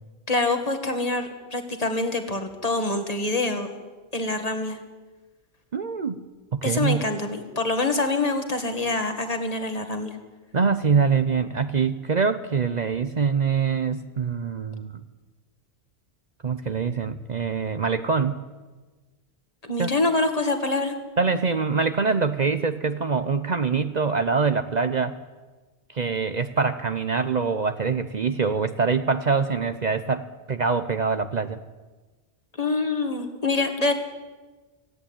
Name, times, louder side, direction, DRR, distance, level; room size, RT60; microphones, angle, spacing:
voice 1, 0.3-3.7 4.1-4.8 6.6-10.2 19.6-21.0 32.6-33.9, left 2 dB, 40° left, 5 dB, 2.1 m, -25 dB
voice 2, 5.7-6.2 6.5-7.0 10.5-14.9 16.4-18.4 19.8-19.9 21.2-25.2 25.9-31.6, right 5 dB, 50° right, 9 dB, 0.8 m, -24 dB
18.0 x 16.5 x 8.9 m, 1.3 s
omnidirectional pair, 1.0 m